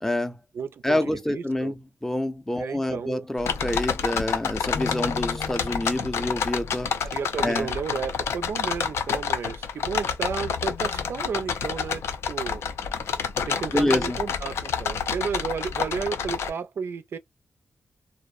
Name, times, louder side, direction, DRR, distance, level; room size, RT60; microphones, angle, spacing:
voice 1, 0.0-0.4 0.8-7.0 7.4-7.7 13.7-14.2, left 1 dB, 10° left, 0.5 m, -27 dB
voice 2, 0.5-1.7 2.6-3.3 7.0-12.6 13.5-17.2, right 6 dB, 65° right, 0.4 m, -33 dB
sound 1, 3.4-16.5, left 7 dB, 90° left, 0.4 m, -28 dB
sound 2, 4.7-8.9, left 5 dB, 55° left, 0.7 m, -41 dB
2.6 x 2.0 x 2.3 m
cardioid pair, 85°, 4 cm